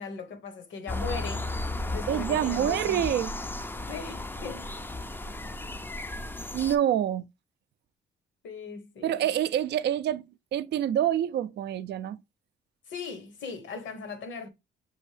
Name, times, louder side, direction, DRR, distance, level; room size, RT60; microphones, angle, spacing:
voice 1, 0.0-1.5 1.9-3.2 3.9-4.7 5.4-5.5 8.4-9.2 12.9-14.5, left 5 dB, 70° left, 1.1 m, -39 dB
sound 1, 0.9-6.8, left 2 dB, 10° left, 0.4 m, -34 dB
voice 2, 2.1-3.3 6.5-7.2 9.0-12.2, right 11 dB, 60° right, 0.4 m, -27 dB
6.0 x 2.6 x 3.2 m
cardioid pair, 90°, 20 cm